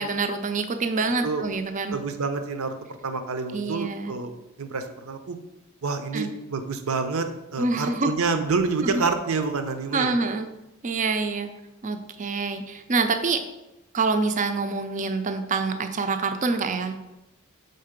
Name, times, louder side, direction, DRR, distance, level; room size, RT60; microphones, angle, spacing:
voice 1, 0.0-2.0 3.5-4.1 6.1-6.3 7.6-8.1 8.8-9.0 9.9-10.5 10.8-11.5 11.8-13.4 13.9-17.0, right 4 dB, 35° right, 8 dB, 0.5 m, -26 dB
voice 2, 1.9-2.7 3.0-4.3 4.6-5.4 5.8-10.1, right 4 dB, 75° right, 8 dB, 0.7 m, -28 dB
5.6 x 3.9 x 5.1 m, 0.97 s
head